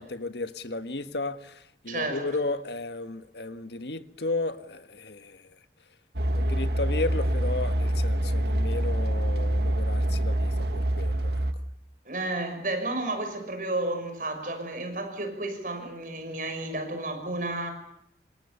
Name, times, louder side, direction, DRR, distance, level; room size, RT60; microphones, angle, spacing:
voice 1, 0.0-5.5 6.3-11.4, left 2 dB, 70° left, 1.6 m, -34 dB
voice 2, 1.9-2.3 12.1-17.7, right 2 dB, 50° right, 6.2 m, -32 dB
sound 1, 6.1-11.5, right 1 dB, 65° right, 1.7 m, -26 dB
27.5 x 26.5 x 7.1 m
head